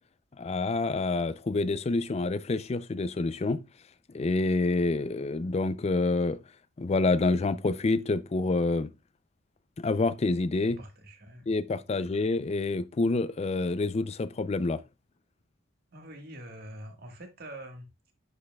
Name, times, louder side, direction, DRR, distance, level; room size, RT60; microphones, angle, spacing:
voice 1, 0.4-3.6 4.1-6.4 6.8-8.9 9.8-10.8 11.5-14.8, left 3 dB, 30° left, 0.4 m, -27 dB
voice 2, 10.6-11.5 15.9-18.1, right 1 dB, 50° right, 1.5 m, -45 dB
9.9 x 5.4 x 2.2 m
head